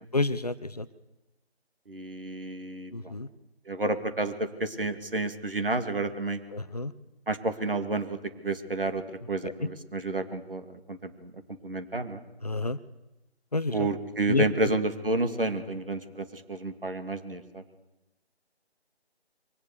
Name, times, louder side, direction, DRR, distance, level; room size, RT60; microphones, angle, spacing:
voice 1, 0.1-0.9 2.9-3.3 6.5-6.9 9.4-9.5 12.4-12.8 13.5-13.9 14.3-14.7, left 2 dB, 35° left, 15 dB, 0.8 m, -29 dB
voice 2, 1.9-3.1 3.7-6.4 7.3-8.2 8.4-9.0 9.3-11.3 11.6-12.2 13.7-17.6, right 2 dB, 55° right, 7 dB, 2.7 m, -30 dB
23.0 x 17.5 x 6.9 m, 0.99 s
figure-of-eight pair, 160°, 32 cm